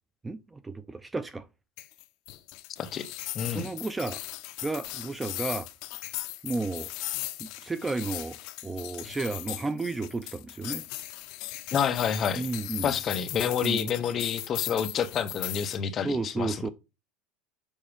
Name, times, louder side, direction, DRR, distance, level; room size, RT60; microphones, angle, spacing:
voice 1, 0.2-1.5 3.5-4.2 4.6-5.7 6.4-6.9 7.4-8.4 8.6-10.9 12.4-12.9 13.6-13.9 14.1-14.3 16.0-16.7, right 3 dB, 10° right, 0.4 m, -32 dB
sound 1, 1.8-15.8, left 17 dB, 55° left, 0.9 m, -38 dB
voice 2, 3.3-3.7 11.7-12.5 12.8-16.7, left 7 dB, 30° left, 0.9 m, -28 dB
7.3 x 5.8 x 5.2 m
supercardioid pair, 155°, 0 cm